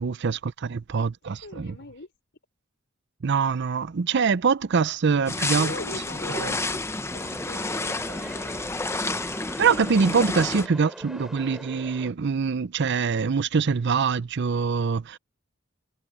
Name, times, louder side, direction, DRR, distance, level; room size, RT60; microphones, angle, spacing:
voice 1, 0.0-1.7 3.2-5.7 6.3-6.6 9.6-15.2, right 5 dB, 60° right, 0.5 m, -24 dB
voice 2, 1.4-2.1 5.6-6.6 7.1-8.8 10.7-11.0 11.4-11.8, left 2 dB, 60° left, 5.2 m, -41 dB
sound 1, 5.3-10.7, left 2 dB, 15° left, 0.8 m, -30 dB
sound 2, 7.1-12.1, equal, ahead, 6.9 m, -42 dB
head